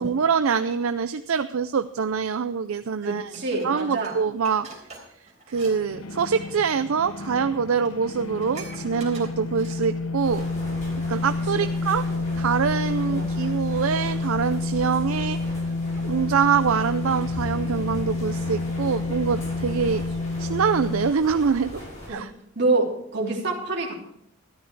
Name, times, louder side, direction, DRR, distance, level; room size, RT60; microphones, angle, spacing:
voice 1, 0.0-3.3 3.6-4.7 5.5-10.5 11.1-12.1 12.4-15.4 16.0-20.0 20.4-21.8 22.1-22.3, right 6 dB, 70° right, 11 dB, 0.5 m, -24 dB
voice 2, 3.0-4.2 11.5-11.7 13.1-13.3 22.1-22.2 22.5-23.9, right 3 dB, 50° right, -2 dB, 3.2 m, -27 dB
Dishes pots and pans, 3.3-5.8 6.1-6.3 7.1-7.2 7.5-7.6 7.8-10.1 10.5-10.6, right 4 dB, 30° right, 3.7 m, -45 dB
sound 1, 5.5-21.1, left 3 dB, 70° left, 0.8 m, -29 dB
sound 2, 10.2-22.1, equal, 35° left, 6.2 m, -38 dB
13.5 x 12.0 x 4.6 m, 0.75 s
head